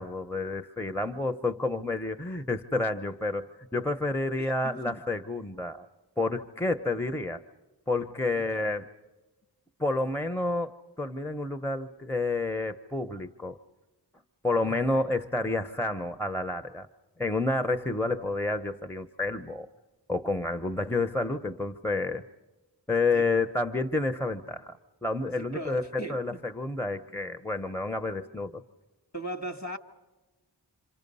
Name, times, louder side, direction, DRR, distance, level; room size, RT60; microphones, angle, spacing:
voice 1, 0.0-5.9 6.2-7.4 7.9-8.9 9.8-10.7 11.0-13.6 14.4-16.9 17.2-19.7 20.1-22.2 22.9-24.8 25.0-28.6, left 2 dB, 5° left, 0.8 m, -29 dB
voice 2, 4.4-5.0 8.3-8.5 14.6-14.8 23.1-23.3 25.5-26.4 29.1-29.8, right 1 dB, 40° left, 1.9 m, -38 dB
28.0 x 26.0 x 5.5 m
wide cardioid pair, 60°, 44 cm